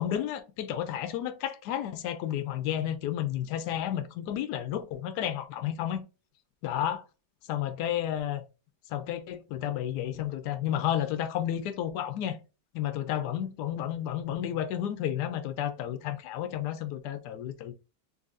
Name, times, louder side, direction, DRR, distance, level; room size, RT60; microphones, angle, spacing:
voice 1, 0.0-6.0 6.6-7.0 7.5-8.4 8.9-12.4 12.7-17.7, left 11 dB, 75° left, 1.1 m, -31 dB
3.9 x 3.0 x 2.5 m
omnidirectional pair, 1.8 m